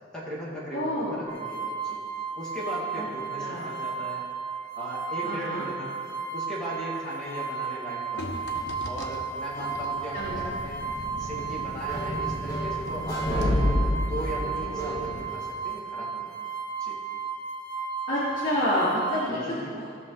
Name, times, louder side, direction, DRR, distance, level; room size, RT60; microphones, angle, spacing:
voice 1, 0.1-2.0 2.4-4.2 4.8-5.9 6.3-8.5 8.8-10.8 11.2-16.3 16.8-17.0 19.3-19.7, equal, 5° left, -7 dB, 2.4 m, -38 dB
voice 2, 0.7-1.2 2.9-3.1 3.4-3.7 5.2-5.7 10.1-10.3 18.1-19.9, left 1 dB, 45° left, -11 dB, 2.4 m, -28 dB
sound 1, 1.3-19.3, right 6 dB, 45° right, 1.8 m, -34 dB
sound 2, 8.2-13.0 13.3-13.5, left 1 dB, 65° left, 1.0 m, -41 dB
sound 3, 10.2-15.2, left 1 dB, 20° left, 1.9 m, -29 dB
16.5 x 6.2 x 4.0 m, 2.2 s
head